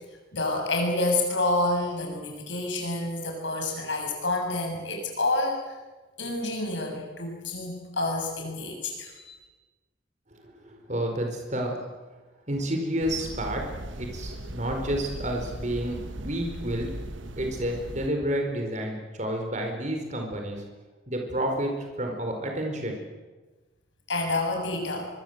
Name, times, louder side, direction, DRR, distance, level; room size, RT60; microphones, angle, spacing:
voice 1, 0.3-5.6 6.2-9.3 24.1-25.1, left 2 dB, 75° left, 3 dB, 7.1 m, -28 dB
voice 2, 10.4-11.7 12.5-13.6 14.0-16.9 17.4-20.6 21.1-21.7 22.0-23.0, right 1 dB, 40° right, 3 dB, 4.6 m, -30 dB
sound 1, 13.0-18.1, right 1 dB, 85° right, 1.5 m, -38 dB
23.5 x 23.0 x 8.1 m, 1.2 s
head